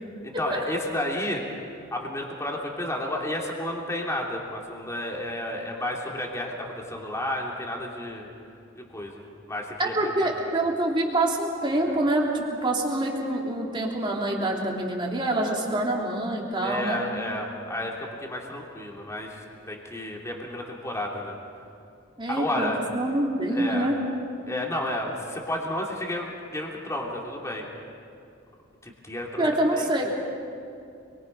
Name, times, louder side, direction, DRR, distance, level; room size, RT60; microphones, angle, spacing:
voice 1, 0.2-1.4 1.9-8.3 8.8-10.3 11.8-11.9 16.6-21.4 22.3-22.8 23.5-23.9 24.5-27.6 28.8-30.1, left 1 dB, 15° left, -1 dB, 2.8 m, -32 dB
voice 2, 9.8-17.0 22.2-24.0 29.4-30.1, right 1 dB, 25° right, -1 dB, 3.1 m, -26 dB
29.0 x 23.0 x 5.4 m, 2.5 s
head